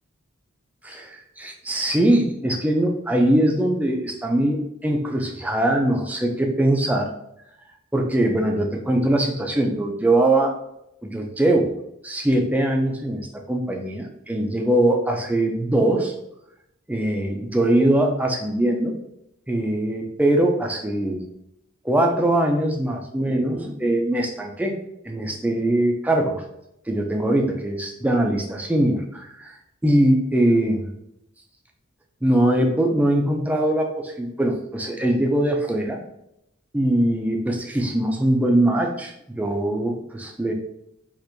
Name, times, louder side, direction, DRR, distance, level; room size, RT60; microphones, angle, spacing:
voice 1, 0.8-7.1 7.9-10.5 11.0-11.7 12.0-16.1 16.9-18.9 19.5-21.2 21.8-24.7 25.1-26.4 26.9-29.5 29.8-30.9 32.2-36.0 36.7-40.5, right 1 dB, 5° right, 2 dB, 0.4 m, -22 dB
4.4 x 2.5 x 2.6 m, 0.82 s
head